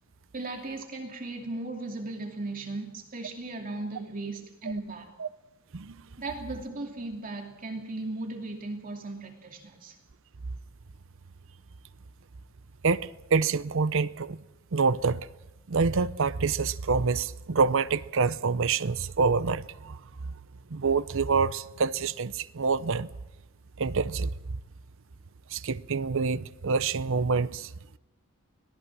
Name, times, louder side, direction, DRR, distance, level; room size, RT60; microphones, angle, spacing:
voice 1, 0.3-5.1 6.2-9.9, right 2 dB, 40° right, 2.7 m, -37 dB
voice 2, 12.8-14.4 14.7-15.2 15.7-20.0 20.2-20.3 20.7-23.1 23.8-24.3 25.5-27.7, right 4 dB, 65° right, 0.7 m, -26 dB
25.0 x 19.0 x 6.2 m
head